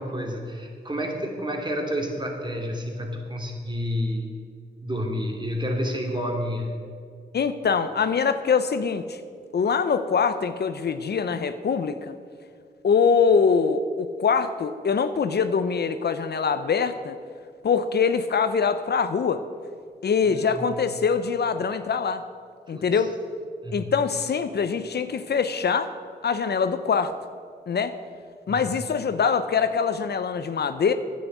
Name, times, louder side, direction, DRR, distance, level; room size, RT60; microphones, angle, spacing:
voice 1, 0.0-4.3 4.8-6.7 20.2-20.8 22.7-23.1 23.6-23.9 28.5-28.7, equal, 25° right, 2 dB, 2.6 m, -30 dB
voice 2, 7.3-9.2 9.5-12.1 12.8-17.2 17.6-19.4 20.0-22.2 22.7-23.1 23.7-25.9 26.2-27.1 27.7-28.0 28.5-30.9, left 6 dB, 60° left, 10 dB, 0.7 m, -23 dB
10.0 x 8.5 x 7.9 m, 2.2 s
cardioid pair, 50°, 19 cm